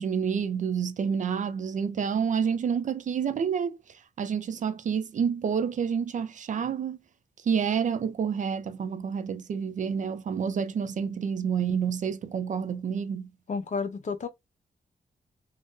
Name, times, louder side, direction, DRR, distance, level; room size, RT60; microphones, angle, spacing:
voice 1, 0.0-3.8 4.2-7.0 7.5-13.3, right 7 dB, 50° right, 0.4 m, -28 dB
voice 2, 13.5-14.3, left 5 dB, 50° left, 0.6 m, -31 dB
2.6 x 2.0 x 3.5 m
wide cardioid pair, 155°, 16 cm